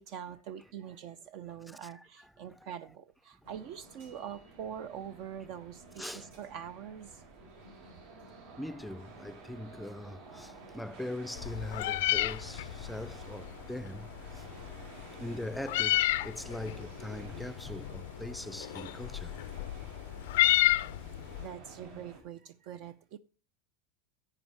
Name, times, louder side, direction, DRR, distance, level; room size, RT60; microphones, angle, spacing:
voice 1, 0.0-7.2 21.4-23.2, right 9 dB, 60° right, 0.6 m, -44 dB
voice 2, 1.7-2.1 2.5-2.6 6.0-6.3 8.6-14.4 15.2-19.3, left 1 dB, ahead, 0.4 m, -41 dB
sound 1, 3.4-22.2, right 3 dB, 80° right, 4.3 m, -51 dB
Meow, 11.4-21.5, left 16 dB, 75° left, 0.4 m, -32 dB
10.5 x 9.2 x 3.4 m
hypercardioid pair, 110°, 0 cm